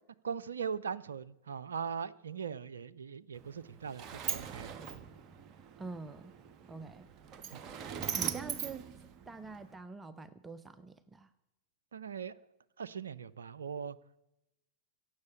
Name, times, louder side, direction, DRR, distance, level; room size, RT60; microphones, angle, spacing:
voice 1, 0.2-5.0 7.5-7.6 11.9-12.4 12.8-14.0, right 6 dB, 70° right, 17 dB, 0.4 m, -40 dB
Sliding door, 3.3-9.7, right 8 dB, 35° right, 1.0 m, -41 dB
voice 2, 5.8-6.3 6.7-7.1 8.1-8.9 9.3-11.3, right 4 dB, 15° right, 14 dB, 0.6 m, -45 dB
16.0 x 7.7 x 8.3 m, 0.89 s
figure-of-eight pair, 90°, 0 cm